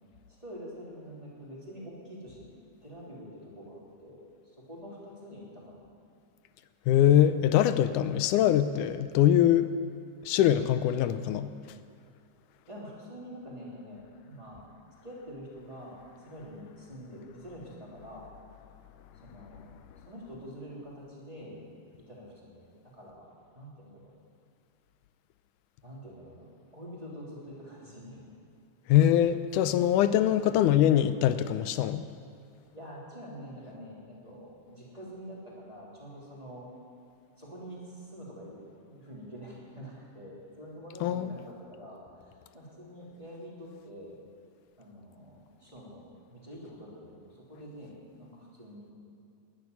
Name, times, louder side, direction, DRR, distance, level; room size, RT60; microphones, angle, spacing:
voice 1, 0.4-5.9 12.7-14.7 15.0-18.3 19.1-19.7 20.0-21.6 22.1-23.3 23.5-24.1 25.8-28.2 30.2-30.6 32.7-36.7 37.4-38.6 38.8-44.2 44.8-46.0 46.3-48.9, equal, 10° right, -6 dB, 3.1 m, -46 dB
voice 2, 6.9-9.7 10.2-11.5 28.9-32.0 41.0-41.3, left 11 dB, 80° left, 12 dB, 2.0 m, -23 dB
12.5 x 11.0 x 9.6 m, 2.4 s
omnidirectional pair, 3.7 m